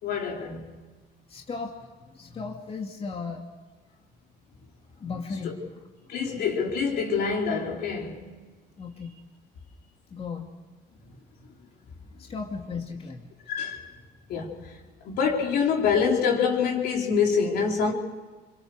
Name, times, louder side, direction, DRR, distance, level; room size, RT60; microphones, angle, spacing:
voice 1, 0.0-0.7 5.4-5.5 6.1-8.2 13.5-13.9 14.3-14.6 15.0-17.9, left 6 dB, 70° left, 4.4 m, -25 dB
voice 2, 1.3-3.5 5.0-5.7 6.0-6.1 8.8-9.1 10.1-10.5 12.2-13.3, left 4 dB, 35° left, 2.4 m, -36 dB
27.0 x 24.5 x 6.6 m
cardioid pair, 110°, 17 cm